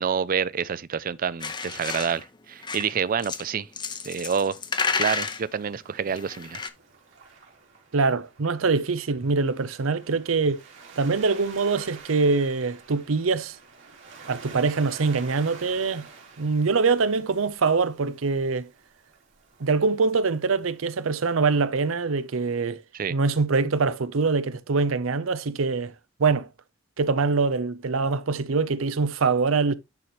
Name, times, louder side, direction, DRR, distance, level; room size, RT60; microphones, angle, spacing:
voice 1, 0.0-3.7 4.0-4.6 5.0-6.6 22.9-23.1, right 6 dB, 45° right, 0.4 m, -28 dB
sound 1, 1.4-2.2 2.6-2.9 3.2-3.4 3.8-5.4 6.1-6.7, left 5 dB, 25° left, 0.7 m, -30 dB
Waves surf, 4.8-22.7, right 4 dB, 70° right, 2.8 m, -49 dB
voice 2, 7.9-10.6 11.0-13.6 14.3-16.1 16.4-18.7 19.6-22.8 23.1-25.9 26.2-26.5 27.0-29.7, right 4 dB, 85° right, 0.6 m, -24 dB
10.5 x 4.4 x 3.1 m
head